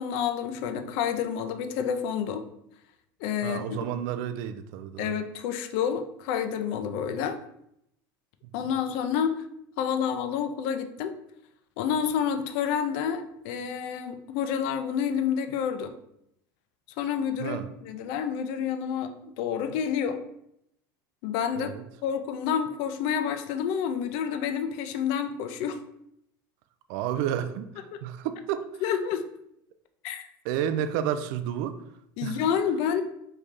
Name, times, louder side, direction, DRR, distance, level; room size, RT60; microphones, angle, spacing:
voice 1, 0.0-2.4 3.2-3.8 5.0-7.4 8.5-9.4 9.8-11.1 11.8-15.9 17.0-20.2 21.2-21.7 22.0-25.8 28.8-29.2 30.0-30.3 32.2-33.0, left 8 dB, 60° left, 8 dB, 0.4 m, -29 dB
voice 2, 3.4-5.2 8.6-8.7 17.4-17.7 21.6-21.8 26.9-28.8 30.4-31.8 32.2-32.4, right 9 dB, 60° right, 10 dB, 0.4 m, -31 dB
3.2 x 2.7 x 3.5 m, 0.77 s
hypercardioid pair, 90°, 11 cm